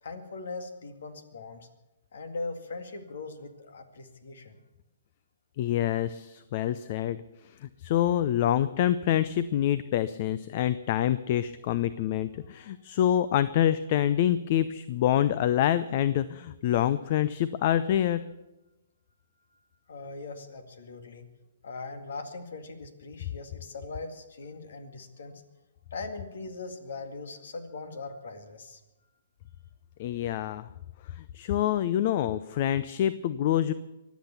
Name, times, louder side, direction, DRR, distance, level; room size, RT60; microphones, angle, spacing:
voice 1, 0.0-1.7 2.1-4.6 12.4-12.7 19.9-21.2 21.6-25.4 25.9-28.8, left 3 dB, 70° left, 8 dB, 2.1 m, -40 dB
voice 2, 5.6-7.2 7.6-18.2 30.0-30.6 31.3-33.7, left 11 dB, 45° left, 15 dB, 0.6 m, -26 dB
23.5 x 8.3 x 7.0 m, 1.0 s
hypercardioid pair, 125°, 0 cm